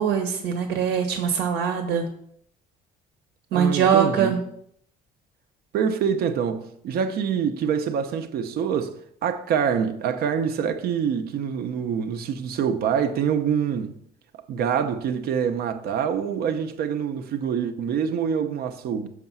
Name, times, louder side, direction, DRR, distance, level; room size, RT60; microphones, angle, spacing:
voice 1, 0.0-2.1 3.5-4.4, right 7 dB, 85° right, 1.1 m, -22 dB
voice 2, 3.5-4.3 5.7-14.0 14.5-19.1, right 7 dB, 65° right, 0.7 m, -25 dB
6.6 x 4.8 x 5.5 m
cardioid pair, 110°, 17 cm